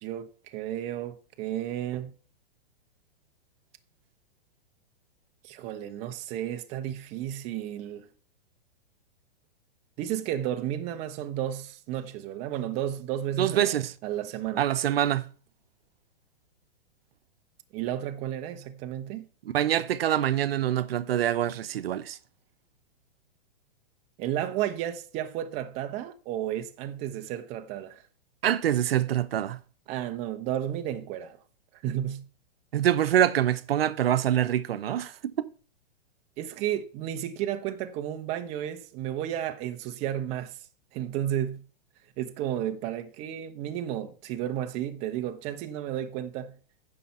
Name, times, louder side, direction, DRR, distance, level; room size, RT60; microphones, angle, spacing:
voice 1, 0.0-2.1 5.4-8.1 10.0-14.6 17.7-19.3 24.2-28.0 29.9-31.4 31.8-32.3 36.4-40.6 40.9-41.6 42.2-46.6, right 11 dB, 20° right, 0.7 m, -32 dB
voice 2, 13.4-13.9 14.6-15.3 19.5-22.2 28.4-29.6 32.7-35.5, right 11 dB, 75° right, 0.8 m, -25 dB
15.5 x 5.7 x 4.2 m
hypercardioid pair, 160°, 30 cm